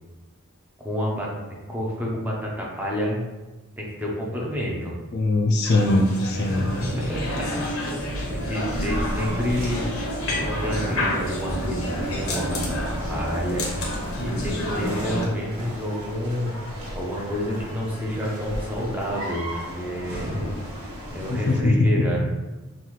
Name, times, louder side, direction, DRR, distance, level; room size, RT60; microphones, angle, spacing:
voice 1, 0.8-3.3 3.8-5.0 6.5-7.9 8.3-9.9 10.3-13.7 14.2-16.6 16.9-20.5 21.1-22.2, equal, 10° right, -3 dB, 0.8 m, -29 dB
voice 2, 5.1-6.7 21.3-22.1, left 2 dB, 50° left, 3 dB, 0.4 m, -21 dB
sound 1, 5.6-15.3, left 1 dB, 90° left, 0.9 m, -30 dB
sound 2, 6.3-18.1, right 1 dB, 60° right, 0.6 m, -35 dB
sound 3, 8.7-21.6, equal, 85° right, 1.3 m, -35 dB
5.5 x 2.6 x 3.1 m, 1.1 s
head